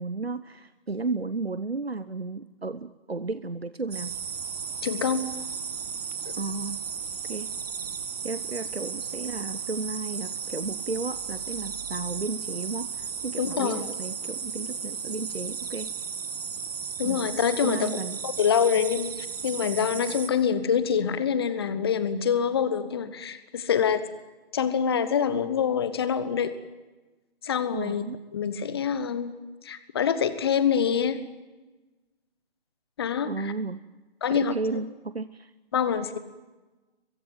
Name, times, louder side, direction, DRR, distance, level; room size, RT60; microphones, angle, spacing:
voice 1, 0.0-4.1 6.4-6.8 7.3-7.5 8.2-15.9 17.0-18.2 27.7-28.2 33.2-33.8 34.3-35.5, right 3 dB, 90° right, 14 dB, 1.0 m, -33 dB
sound 1, 3.9-20.3, right 6 dB, 40° right, 2.1 m, -35 dB
voice 2, 4.8-5.3 13.4-13.9 17.0-17.9 18.2-24.0 24.5-26.5 27.4-28.0 28.3-29.3 29.6-31.3 33.0-33.5 34.2-34.5 35.7-36.2, left 7 dB, 25° left, 13 dB, 1.2 m, -25 dB
23.0 x 22.5 x 9.2 m, 1.2 s
figure-of-eight pair, 145°, 30 cm